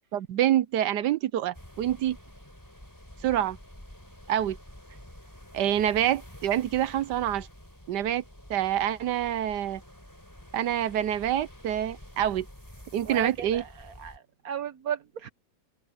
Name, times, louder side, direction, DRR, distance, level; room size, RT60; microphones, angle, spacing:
voice 1, 0.1-2.2 3.2-3.6 4.3-4.6 5.5-7.5 7.9-8.2 8.5-9.8 10.5-12.4 12.9-13.6, right 11 dB, 70° right, 1.2 m, -26 dB
sound 1, 1.5-14.2, equal, 10° left, 4.5 m, -49 dB
voice 2, 13.0-15.3, right 8 dB, 50° right, 1.7 m, -35 dB
open air
omnidirectional pair, 2.1 m